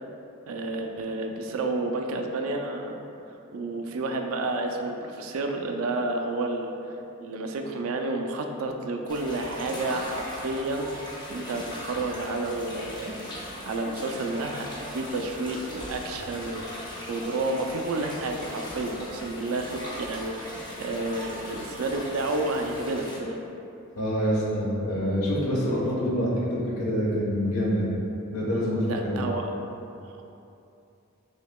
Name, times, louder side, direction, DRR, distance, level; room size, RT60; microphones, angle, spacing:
voice 1, 0.5-3.0 3.3-6.7 7.2-11.0 11.3-13.3 13.6-23.4 28.8-29.5 30.0-30.2, right 2 dB, 75° right, 3 dB, 0.4 m, -30 dB
sound 1, 9.1-23.2, left 1 dB, 20° left, 0.6 m, -39 dB
voice 2, 23.9-27.9 28.3-29.2, equal, 85° left, -5 dB, 1.1 m, -26 dB
6.3 x 2.8 x 2.2 m, 2.8 s
head